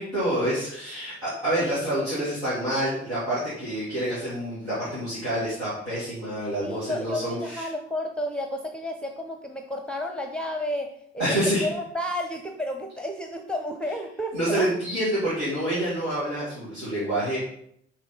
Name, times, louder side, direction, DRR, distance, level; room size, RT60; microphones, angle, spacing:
voice 1, 0.0-7.6 11.2-11.6 14.3-17.4, right 1 dB, 85° right, -11 dB, 2.2 m, -27 dB
voice 2, 6.6-14.7, left 1 dB, 5° left, 4 dB, 0.8 m, -32 dB
6.2 x 4.0 x 5.6 m, 0.70 s
figure-of-eight pair, 40°, 32 cm